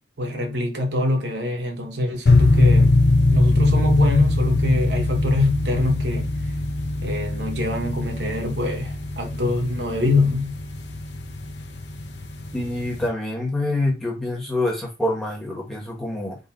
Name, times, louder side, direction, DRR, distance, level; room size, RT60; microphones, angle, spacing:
voice 1, 0.2-3.0 3.3-6.3 7.0-10.6, left 2 dB, 65° right, 1.1 m, -23 dB
sound 1, 2.3-13.1, left 2 dB, 65° left, 0.7 m, -22 dB
voice 2, 12.5-16.4, left 1 dB, ahead, 1.5 m, -26 dB
3.9 x 2.8 x 4.1 m
head